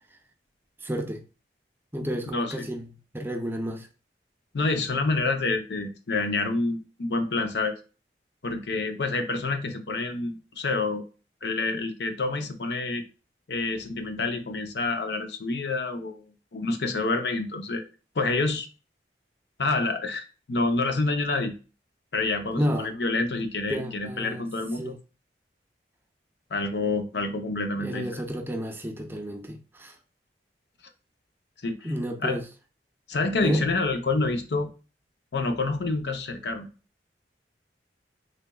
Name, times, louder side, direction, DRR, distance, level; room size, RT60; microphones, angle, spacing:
voice 1, 0.8-1.2 1.9-3.9 22.6-22.9 23.7-24.5 24.8-25.0 27.8-29.9 31.8-32.4 33.4-33.6, equal, 15° right, 0.5 m, -31 dB
voice 2, 2.3-2.7 4.5-7.8 8.4-11.0 11.4-13.0 13.5-16.2 16.5-17.8 18.2-18.7 19.6-21.6 22.1-25.0 26.5-28.2 31.6-31.9 32.2-32.4 33.1-34.7 35.3-36.7, left 3 dB, 70° left, 0.6 m, -28 dB
3.8 x 3.3 x 2.2 m
head